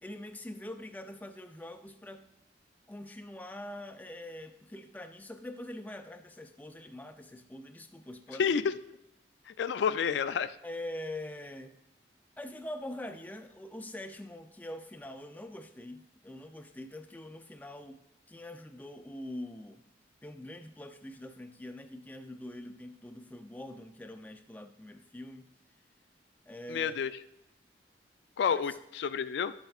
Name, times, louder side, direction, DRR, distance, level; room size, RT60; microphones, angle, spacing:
voice 1, 0.0-2.3 2.9-8.6 10.6-11.8 12.4-19.9 20.2-25.5 26.5-26.9 28.5-28.8, left 1 dB, 10° left, 7 dB, 0.4 m, -44 dB
voice 2, 8.4-8.7 9.5-10.5 26.7-27.1 28.4-29.5, left 7 dB, 85° left, 12 dB, 0.3 m, -29 dB
10.5 x 7.7 x 2.4 m, 0.85 s
head